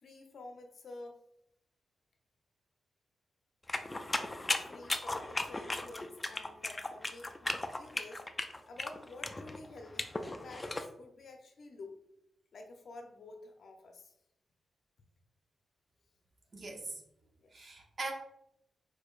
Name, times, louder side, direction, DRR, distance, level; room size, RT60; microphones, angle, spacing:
voice 1, 0.0-1.2 4.7-12.0 12.5-14.1 17.4-17.7, left 2 dB, 60° left, 4 dB, 0.6 m, -51 dB
sound 1, 3.7-10.9, left 2 dB, 15° left, 0.3 m, -36 dB
voice 2, 16.5-17.0 17.5-18.1, right 3 dB, 45° right, 1 dB, 0.9 m, -41 dB
4.9 x 4.5 x 2.4 m, 0.82 s
wide cardioid pair, 140°, 0 cm